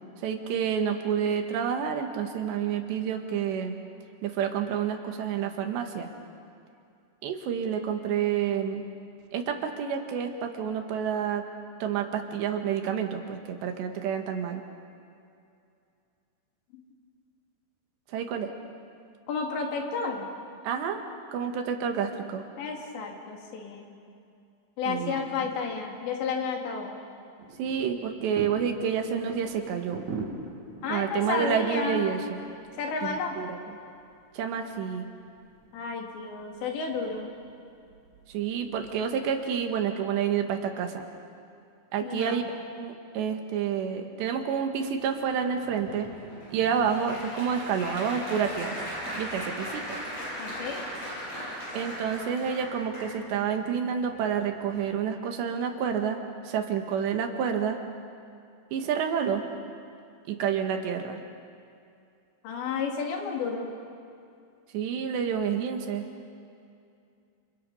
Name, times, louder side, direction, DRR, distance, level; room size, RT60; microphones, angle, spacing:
voice 1, 0.2-3.8 4.2-6.1 7.2-8.8 9.3-11.4 11.8-14.6 18.1-18.5 20.6-21.0 21.3-22.4 24.9-25.5 27.6-30.0 30.9-32.4 33.0-33.6 34.3-35.1 38.3-41.0 41.9-42.5 42.8-46.1 46.5-48.9 49.2-50.0 51.8-56.2 56.5-57.8 58.7-59.4 60.3-61.2 64.7-66.0, right 7 dB, 80° right, 4 dB, 3.8 m, -29 dB
voice 2, 19.3-20.3 22.6-24.0 24.8-27.0 30.8-32.1 32.8-33.4 35.7-37.3 42.0-42.5 50.4-50.8 62.4-63.7, left 5 dB, 85° left, 1 dB, 4.8 m, -32 dB
sound 1, 27.4-39.5, right 4 dB, 50° right, 2.7 m, -44 dB
Applause, 45.1-53.5 54.1-54.3 54.6-54.8, equal, 35° left, 8.1 m, -38 dB
29.5 x 28.5 x 5.5 m, 2.5 s
omnidirectional pair, 5.0 m